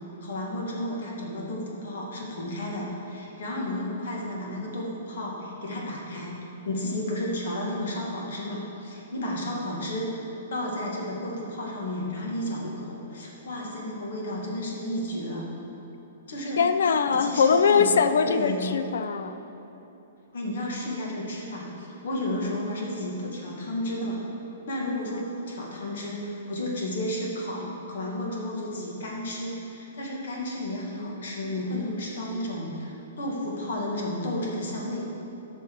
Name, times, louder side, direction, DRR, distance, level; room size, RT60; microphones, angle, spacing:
voice 1, 0.2-6.4 6.6-10.2 10.5-15.5 16.3-16.6 17.1-17.9 18.2-18.7 20.3-24.2 24.7-35.1, left 1 dB, 60° left, -2 dB, 1.9 m, -32 dB
voice 2, 16.6-19.3, left 6 dB, 75° left, 9 dB, 0.5 m, -22 dB
10.5 x 6.4 x 4.7 m, 3.0 s
hypercardioid pair, 175°, 0 cm